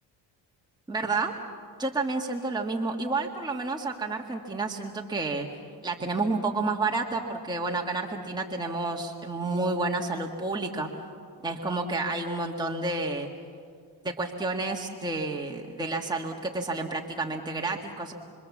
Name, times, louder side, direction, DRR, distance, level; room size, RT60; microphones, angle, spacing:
voice 1, 0.9-1.3 1.8-5.5 5.8-10.9 11.4-13.3 14.0-18.1, right 3 dB, 10° right, 0 dB, 1.8 m, -30 dB
26.0 x 24.5 x 7.3 m, 2.2 s
cardioid pair, 100°, 46 cm